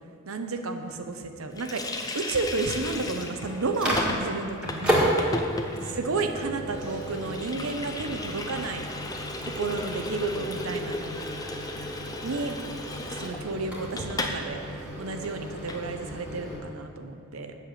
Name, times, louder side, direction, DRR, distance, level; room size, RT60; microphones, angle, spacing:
voice 1, 0.3-5.1 5.9-8.9 9.4-11.2 12.2-12.5 13.2-17.6, right 3 dB, 80° right, 6 dB, 0.8 m, -32 dB
Water tap faucet, 1.6-14.4 14.7-14.8 15.1-15.8, left 2 dB, 15° left, 0.5 m, -36 dB
Microwave oven, 2.9-16.6, equal, 5° right, 1.7 m, -33 dB
7.8 x 6.7 x 7.6 m, 2.4 s
head